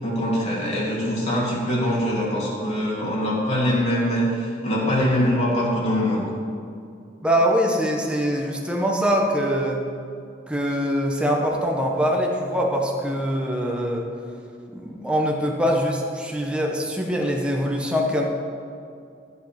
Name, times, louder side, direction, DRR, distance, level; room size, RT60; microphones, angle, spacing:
voice 1, 0.0-6.3, equal, 40° left, -6 dB, 2.6 m, -23 dB
voice 2, 7.2-9.8 10.5-14.1 14.7-18.2, equal, 5° right, -1 dB, 1.2 m, -23 dB
13.5 x 7.7 x 6.0 m, 2.4 s
head